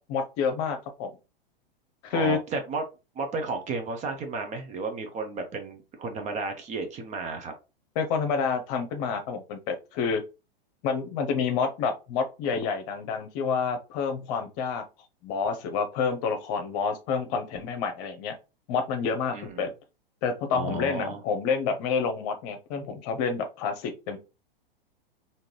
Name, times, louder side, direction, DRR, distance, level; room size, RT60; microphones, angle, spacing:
voice 1, 0.1-1.1 2.0-2.4 8.0-10.2 10.8-14.8 15.2-18.4 18.7-19.7 20.2-24.2, left 5 dB, 40° left, 7 dB, 0.8 m, -28 dB
voice 2, 2.1-2.8 3.2-7.5 19.3-19.7 20.5-21.2, right 4 dB, 25° right, 6 dB, 0.7 m, -33 dB
3.7 x 2.7 x 3.0 m, 0.29 s
figure-of-eight pair, 100°, 29 cm